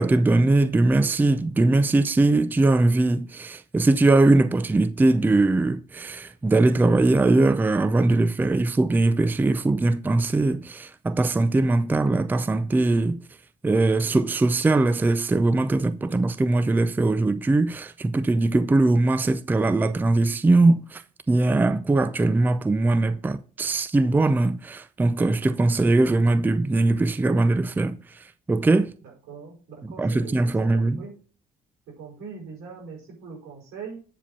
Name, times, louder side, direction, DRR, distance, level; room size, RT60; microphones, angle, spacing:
voice 1, 0.0-13.2 13.6-21.0 21.3-28.0 28.5-28.9 30.0-31.0, right 2 dB, 10° right, 0.4 m, -21 dB
voice 2, 29.0-30.4 30.7-31.2 31.9-34.0, right 5 dB, 90° right, 5.2 m, -41 dB
8.7 x 5.0 x 5.4 m
cardioid pair, 110°, 17 cm